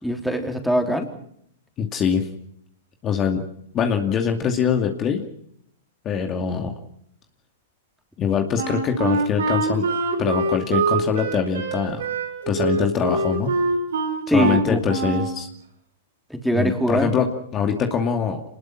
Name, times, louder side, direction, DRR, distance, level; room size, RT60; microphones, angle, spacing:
voice 1, 0.0-1.1 14.3-14.8 16.3-17.2, equal, ahead, 3 dB, 3.7 m, -22 dB
voice 2, 1.8-2.3 3.0-3.4 3.7-5.2 6.0-6.7 8.2-9.9 10.2-12.1 12.5-13.6 14.3-15.5 16.5-18.4, left 7 dB, 30° left, 4 dB, 2.5 m, -23 dB
Wind instrument woodwind instrument, 8.6-15.4, right 3 dB, 80° right, 6.9 m, -24 dB
27.5 x 20.0 x 6.0 m, 0.71 s
hypercardioid pair, 115°, 0 cm